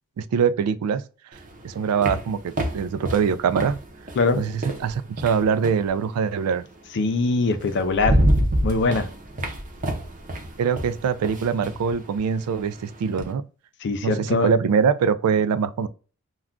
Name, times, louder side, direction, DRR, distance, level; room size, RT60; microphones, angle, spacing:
voice 1, 0.2-1.0 1.6-3.8 4.3-6.6 10.6-13.4 14.0-15.9, right 6 dB, 80° right, 0.3 m, -23 dB
sound 1, 1.3-5.9 7.2-7.3 7.7-13.3, equal, 35° right, 0.6 m, -27 dB
voice 2, 6.9-8.2 8.6-9.1 13.8-14.5, left 3 dB, 55° left, 0.4 m, -22 dB
2.3 x 2.2 x 3.6 m
head